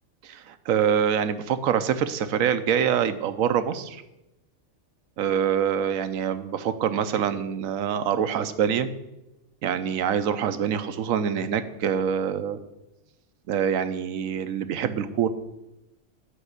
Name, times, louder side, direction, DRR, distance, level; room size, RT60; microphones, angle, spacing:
voice 1, 0.2-4.0 5.2-8.9 9.6-12.6 13.5-15.3, right 8 dB, 75° right, 12 dB, 1.1 m, -25 dB
9.9 x 5.3 x 8.1 m, 0.95 s
omnidirectional pair, 1.5 m